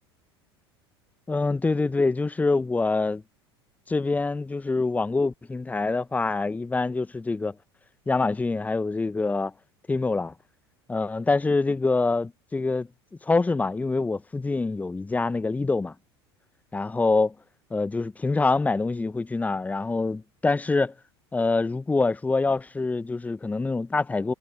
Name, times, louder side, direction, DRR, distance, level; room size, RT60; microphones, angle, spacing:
voice 1, 1.3-3.2 3.9-7.5 8.1-9.5 9.9-10.3 10.9-12.9 13.3-15.9 16.7-17.3 17.7-20.9 21.3-24.3, left 3 dB, 10° left, 1.0 m, -25 dB
figure-of-eight pair, 75°, 13 cm